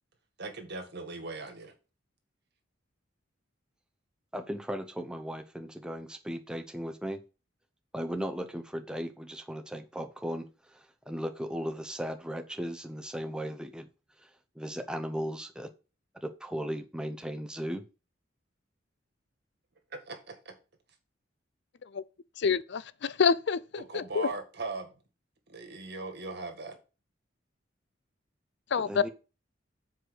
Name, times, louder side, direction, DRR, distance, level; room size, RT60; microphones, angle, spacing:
voice 1, 0.4-1.7 19.9-20.6 23.8-24.9 25.5-26.8, right 3 dB, 60° right, 1.8 m, -39 dB
voice 2, 4.3-7.2 7.9-10.5 10.7-13.9 14.6-15.7 16.1-17.8 28.8-29.1, equal, 5° right, 0.8 m, -36 dB
voice 3, 22.4-24.3 28.7-29.0, left 6 dB, 65° left, 0.5 m, -27 dB
7.6 x 4.8 x 6.3 m
head